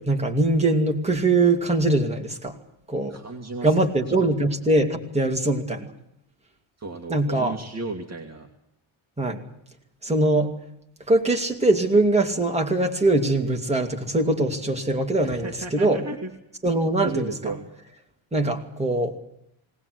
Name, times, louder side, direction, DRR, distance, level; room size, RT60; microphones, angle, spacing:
voice 1, 0.0-2.6 2.9-3.2 3.6-5.9 7.1-7.6 9.2-9.4 10.0-10.5 11.1-16.1 16.6-17.5 18.3-19.2, right 2 dB, 15° right, 2 dB, 2.7 m, -22 dB
voice 2, 3.1-3.8 6.8-8.5 15.2-16.3 16.7-17.6, right 3 dB, 35° right, 2 dB, 2.3 m, -34 dB
20.0 x 19.0 x 8.0 m, 0.77 s
wide cardioid pair, 155°, 48 cm